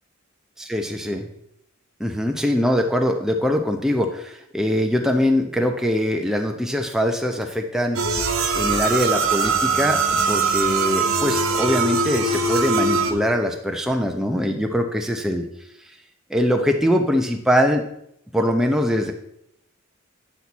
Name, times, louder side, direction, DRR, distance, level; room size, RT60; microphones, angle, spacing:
voice 1, 0.6-1.3 2.0-8.0 8.5-15.4 16.3-17.8 18.3-19.1, equal, ahead, 3 dB, 0.8 m, -22 dB
sound 1, 8.0-13.1, right 4 dB, 70° right, 1.2 m, -21 dB
10.0 x 6.1 x 4.1 m, 0.77 s
head